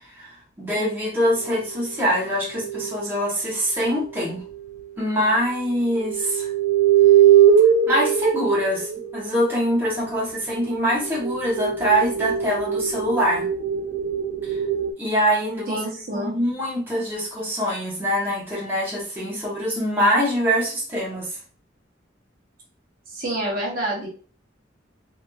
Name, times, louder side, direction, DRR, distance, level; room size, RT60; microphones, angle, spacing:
voice 1, 0.1-4.4 5.0-6.5 7.9-13.5 14.4-14.6 15.0-15.8 16.1-21.4, equal, 10° right, -5 dB, 0.9 m, -24 dB
sound 1, 1.2-3.0 4.5-4.6 6.0-9.6 10.5-14.9, right 9 dB, 80° right, 0.3 m, -21 dB
voice 2, 15.7-16.3 23.1-24.1, right 1 dB, 50° right, -2 dB, 0.8 m, -27 dB
2.9 x 2.5 x 2.2 m, 0.41 s
head